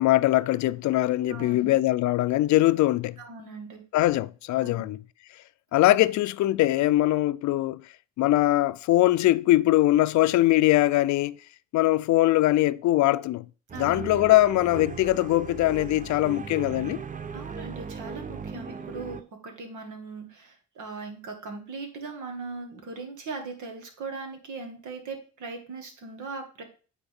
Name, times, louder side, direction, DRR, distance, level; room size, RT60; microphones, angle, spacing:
voice 1, 0.0-3.2 3.9-5.0 5.7-7.8 8.2-11.3 11.7-13.4 13.8-17.0, left 16 dB, 70° left, 0.5 m, -22 dB
voice 2, 1.3-1.7 3.2-3.8 4.6-4.8 13.7-14.2 17.3-26.6, right 4 dB, 75° right, 2.0 m, -39 dB
sound 1, 13.7-19.2, right 6 dB, 25° right, 0.5 m, -37 dB
9.0 x 4.2 x 3.6 m
cardioid pair, 90°, 30 cm